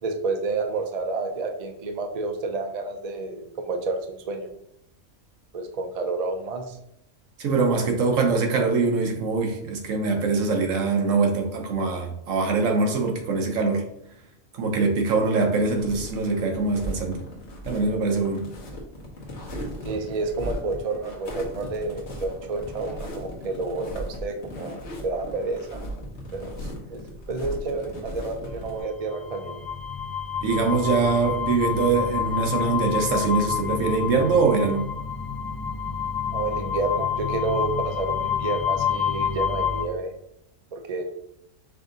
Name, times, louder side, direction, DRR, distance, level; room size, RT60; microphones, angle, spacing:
voice 1, 0.0-4.5 5.5-6.8 19.8-25.8 26.3-29.6 36.3-40.1 40.7-41.0, right 3 dB, 55° right, 4 dB, 0.4 m, -30 dB
voice 2, 7.4-13.8 14.5-17.2 17.6-18.4 30.4-34.9, right 4 dB, 70° right, 2 dB, 1.2 m, -23 dB
sound 1, 15.7-28.8, equal, 55° left, 1.3 m, -37 dB
sound 2, 28.8-39.8, left 7 dB, 40° left, 0.7 m, -28 dB
5.3 x 2.6 x 3.8 m, 0.76 s
omnidirectional pair, 1.4 m